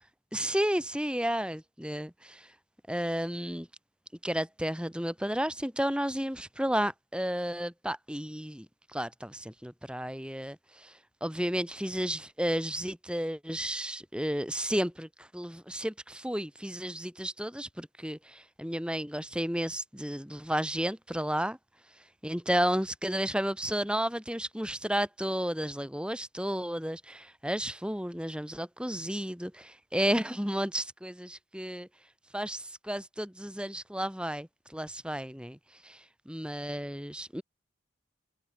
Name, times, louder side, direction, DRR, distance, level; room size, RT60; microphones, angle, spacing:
voice 1, 0.3-2.5 2.9-3.7 4.2-8.7 8.9-10.9 11.2-21.6 22.2-31.9 32.3-35.6 35.8-37.4, equal, 5° right, 5.3 m, -32 dB
head